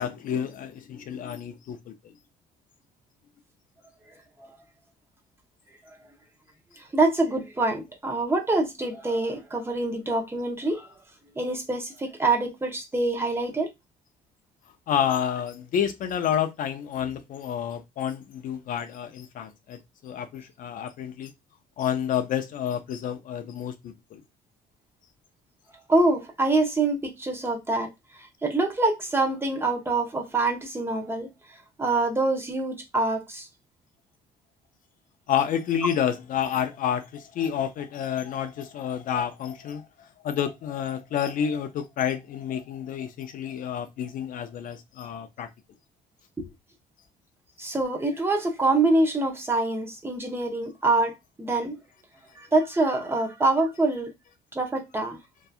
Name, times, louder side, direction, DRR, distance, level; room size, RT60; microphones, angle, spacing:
voice 1, 0.0-2.1 14.9-21.3 21.8-24.2 35.3-39.9 40.2-45.5, left 9 dB, 55° left, 0.4 m, -29 dB
voice 2, 6.8-10.9 11.4-13.7 25.9-27.9 28.4-31.3 31.8-33.5 46.4-46.5 47.6-51.8 52.4-54.1 54.5-55.2, right 2 dB, 15° right, 0.6 m, -25 dB
2.7 x 2.2 x 2.3 m
cardioid pair, 110°, 17 cm